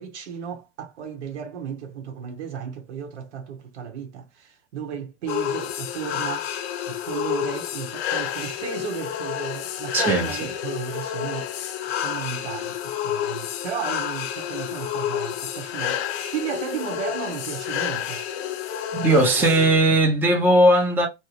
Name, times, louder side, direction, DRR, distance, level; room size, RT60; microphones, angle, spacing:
voice 1, 0.0-6.5 6.9-11.5 12.0-18.2 19.2-19.5, right 7 dB, 75° right, 1.0 m, -34 dB
sound 1, 5.3-19.9, left 10 dB, 60° left, 0.6 m, -30 dB
voice 2, 9.9-10.5 18.9-21.1, right 1 dB, 5° right, 0.6 m, -18 dB
2.8 x 2.2 x 3.0 m
hypercardioid pair, 125°, 35 cm